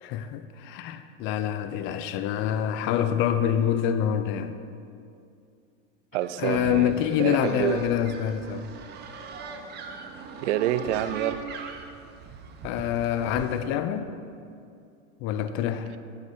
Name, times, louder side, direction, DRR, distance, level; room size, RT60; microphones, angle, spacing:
voice 1, 0.0-4.6 6.4-8.7 12.6-14.1 15.2-15.9, left 9 dB, 30° left, 0.4 m, -26 dB
voice 2, 6.1-6.9 7.2-7.8 10.4-11.4, right 12 dB, 60° right, 0.5 m, -27 dB
sound 1, 6.2-13.6, right 5 dB, 25° right, 0.7 m, -40 dB
9.1 x 6.5 x 4.3 m
hypercardioid pair, 120°, 40 cm